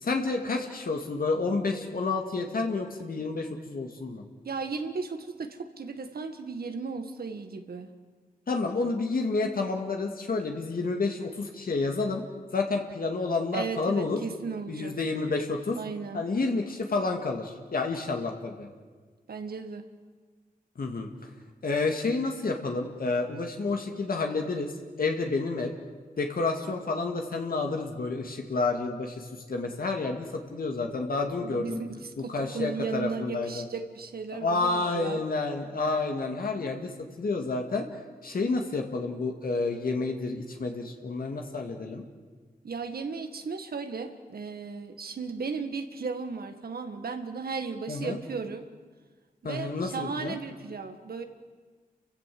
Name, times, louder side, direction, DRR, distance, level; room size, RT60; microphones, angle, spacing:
voice 1, 0.0-4.2 8.5-12.2 12.5-14.2 14.7-15.8 16.1-18.7 20.8-21.1 21.6-24.7 25.0-25.7 26.2-31.8 32.3-33.6 34.4-36.9 37.2-37.9 38.2-42.0 47.9-48.2 49.4-50.4, left 3 dB, 70° left, 3 dB, 2.2 m, -29 dB
voice 2, 4.4-7.9 13.5-15.0 15.8-16.3 19.3-19.9 31.4-35.2 42.6-48.7 49.4-51.2, right 4 dB, 80° right, 7 dB, 1.8 m, -35 dB
29.5 x 16.0 x 7.8 m, 1.5 s
wide cardioid pair, 90°, 16 cm